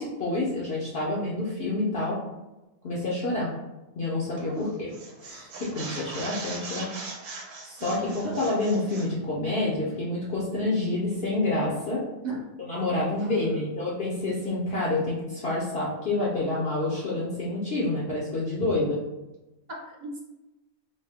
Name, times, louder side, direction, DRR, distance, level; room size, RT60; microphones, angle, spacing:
voice 1, 0.0-2.2 2.8-3.5 4.0-4.9 5.2-6.9 7.6-12.0 12.6-19.0, left 2 dB, 55° left, -6 dB, 0.8 m, -28 dB
voice 2, 4.4-4.7 7.8-8.4 12.2-12.4 13.2-13.7 19.7-20.2, right 2 dB, 40° right, -3 dB, 0.6 m, -36 dB
sound 1, 4.4-4.6 4.9-9.1, right 3 dB, 65° right, 1.0 m, -40 dB
4.2 x 2.1 x 3.5 m, 1.0 s
omnidirectional pair, 1.5 m